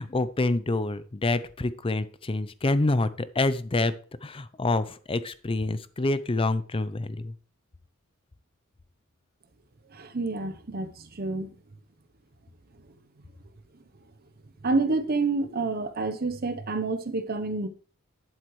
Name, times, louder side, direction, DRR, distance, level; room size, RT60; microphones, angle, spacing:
voice 1, 0.0-3.9 4.2-7.3, left 2 dB, 25° left, 0.6 m, -27 dB
voice 2, 9.9-11.5 14.6-17.7, right 3 dB, 45° right, 0.9 m, -28 dB
11.5 x 7.9 x 3.2 m
head